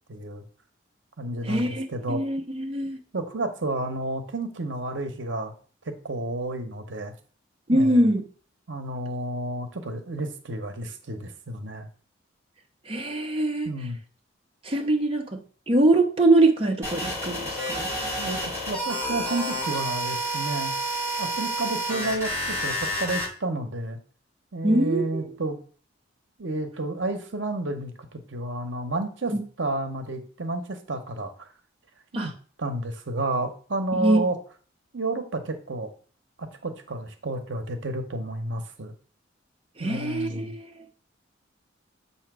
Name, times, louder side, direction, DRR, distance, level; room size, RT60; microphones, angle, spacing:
voice 1, 0.1-0.4 1.2-2.2 3.1-5.5 5.8-7.1 7.7-8.1 8.7-11.9 13.6-14.0 18.0-20.7 21.2-24.0 24.5-25.6 26.4-31.5 32.1-32.3 32.6-34.4 34.9-35.9 36.4-38.9 39.8-40.5, right 2 dB, 70° right, 6 dB, 0.9 m, -31 dB
voice 2, 1.4-3.0 7.7-8.2 12.9-13.7 14.6-15.4 15.7-17.9 24.6-25.3 29.3-29.4 32.1-32.3 33.9-34.2 39.8-40.7, right 1 dB, 30° right, 0 dB, 0.9 m, -23 dB
sound 1, 16.8-23.3, equal, 15° right, 3.9 m, -29 dB
7.8 x 2.8 x 6.0 m, 0.42 s
head